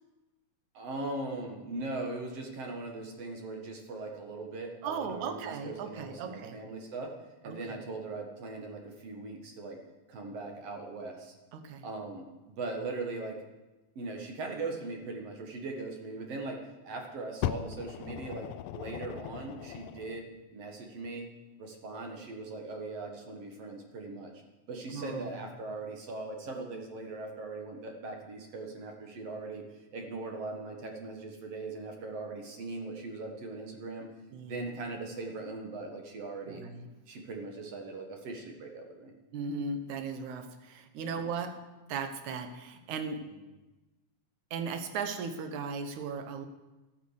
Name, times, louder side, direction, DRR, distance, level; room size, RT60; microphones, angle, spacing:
voice 1, 0.7-7.1 7.4-9.8 10.1-11.3 11.8-13.4 14.0-21.3 21.6-24.3 24.7-29.7 29.9-34.1 34.4-36.6 37.1-39.1 41.0-41.2 43.2-43.5, right 3 dB, 55° right, 2 dB, 2.4 m, -40 dB
voice 2, 4.8-6.6 7.5-7.8 11.5-11.8 17.5-17.6 24.9-25.4 34.3-34.7 36.5-36.9 39.3-43.3 44.5-46.5, right 5 dB, 75° right, 8 dB, 2.3 m, -37 dB
Fire, 17.4-20.2 21.1-21.2, left 12 dB, 90° left, 2.1 m, -38 dB
12.5 x 8.8 x 6.6 m, 1.1 s
omnidirectional pair, 3.6 m